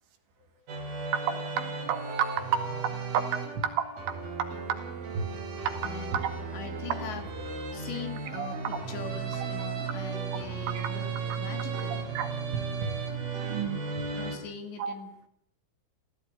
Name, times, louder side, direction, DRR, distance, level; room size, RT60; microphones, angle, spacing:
sound 1, 0.7-14.4, right 5 dB, 50° right, 5.3 m, -35 dB
voice 1, 1.6-2.0 3.1-3.2 3.6-3.8 4.7-4.8 5.1-5.2 6.1-6.3 8.3-8.6 10.7-10.9 12.2-12.9 13.3-13.8 14.8-14.9, right 8 dB, 70° right, 7 dB, 4.5 m, -31 dB
voice 2, 5.8-6.2 6.5-11.1 11.4-12.0 14.1-15.3, left 6 dB, 65° left, 7 dB, 4.3 m, -42 dB
29.0 x 15.5 x 9.7 m, 0.73 s
omnidirectional pair, 5.8 m